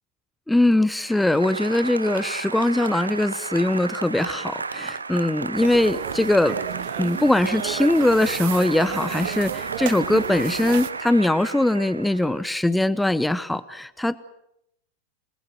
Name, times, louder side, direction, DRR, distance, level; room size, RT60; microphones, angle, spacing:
voice 1, 0.5-6.6 7.0-14.2, left 1 dB, 5° left, 16 dB, 0.9 m, -21 dB
Applause, 1.0-12.5, right 4 dB, 75° right, 1.0 m, -33 dB
sound 1, 5.5-10.9, right 13 dB, 50° right, 1.5 m, -33 dB
28.0 x 20.5 x 7.7 m, 0.79 s
figure-of-eight pair, 90°, 0 cm